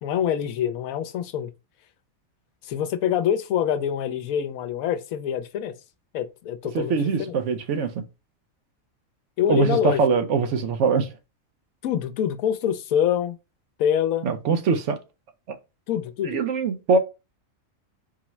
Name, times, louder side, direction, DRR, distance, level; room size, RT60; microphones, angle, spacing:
voice 1, 0.0-1.5 2.6-5.7 6.1-7.3 9.4-10.0 11.8-13.4 13.8-14.3 15.9-16.4, left 9 dB, 85° left, 1.0 m, -25 dB
voice 2, 6.7-8.0 9.5-11.1 14.2-15.0 15.5-15.6 16.2-17.0, right 5 dB, 65° right, 0.9 m, -23 dB
4.7 x 2.0 x 4.3 m
omnidirectional pair, 1.4 m